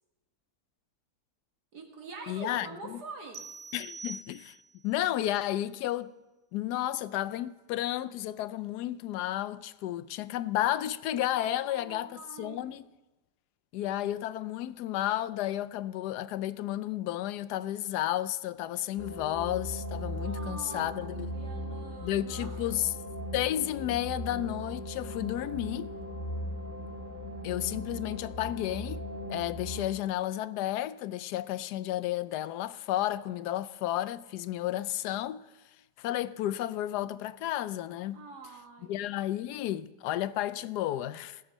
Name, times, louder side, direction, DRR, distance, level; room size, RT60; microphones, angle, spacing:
voice 1, 1.7-3.5 11.4-12.6 20.2-22.7 38.1-38.9, right 3 dB, 90° right, 2.2 m, -45 dB
voice 2, 2.3-3.0 3.7-4.6 4.8-6.1 6.5-12.9 13.7-21.3 22.0-22.9 23.3-25.9 27.4-29.0 29.3-35.4 36.0-38.2 38.9-41.4, left 13 dB, 90° left, 1.1 m, -32 dB
sound 1, 3.3-4.9, right 4 dB, 50° right, 0.6 m, -44 dB
sound 2, 19.0-29.9, equal, 55° left, 1.8 m, -38 dB
18.0 x 7.2 x 5.4 m
omnidirectional pair, 1.7 m